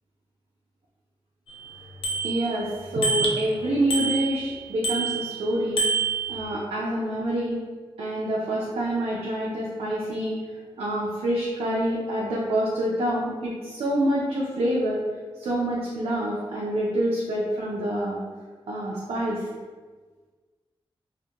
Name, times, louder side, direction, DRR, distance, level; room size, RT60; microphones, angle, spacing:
Bicycle bell, 1.5-1.6 2.0-2.6 3.0-3.5 3.9-4.5 4.8-5.4 5.8-6.5, right 4 dB, 70° left, 0.4 m, -27 dB
voice 1, 2.2-5.9 6.3-7.6 8.0-10.4 10.8-15.0 15.4-18.2 18.7-19.5, right 1 dB, 90° right, -6 dB, 0.4 m, -27 dB
2.2 x 2.1 x 2.8 m, 1.4 s
wide cardioid pair, 115°, 10 cm